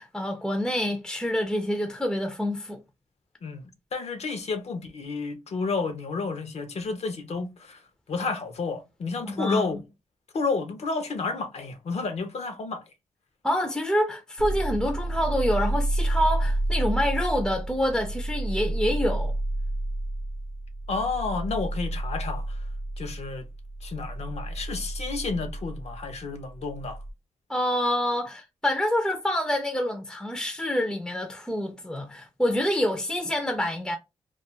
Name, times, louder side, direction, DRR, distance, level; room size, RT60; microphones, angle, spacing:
voice 1, 0.0-2.8 9.4-9.7 13.4-19.3 27.5-34.0, equal, 5° left, 0.4 m, -27 dB
voice 2, 3.9-7.8 8.1-9.8 10.3-12.8 20.9-22.6 23.0-23.5 23.8-27.0, left 4 dB, 65° left, 0.7 m, -31 dB
sound 1, 14.4-27.1, right 1 dB, 75° right, 0.7 m, -30 dB
2.3 x 2.2 x 2.9 m
cardioid pair, 85°, 12 cm